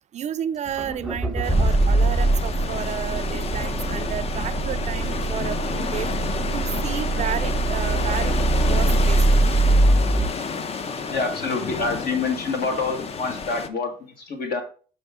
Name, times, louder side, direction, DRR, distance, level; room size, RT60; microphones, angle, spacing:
voice 1, 0.1-6.1 6.5-8.4 8.7-9.8, right 9 dB, 45° right, 0.4 m, -32 dB
Accelerating revving vroom, 0.7-10.3, right 2 dB, ahead, 0.8 m, -22 dB
sound 1, 1.4-13.7, left 5 dB, 35° left, 0.6 m, -30 dB
voice 2, 11.0-14.6, left 4 dB, 60° left, 1.8 m, -27 dB
6.6 x 5.5 x 3.6 m
cardioid pair, 110°, 17 cm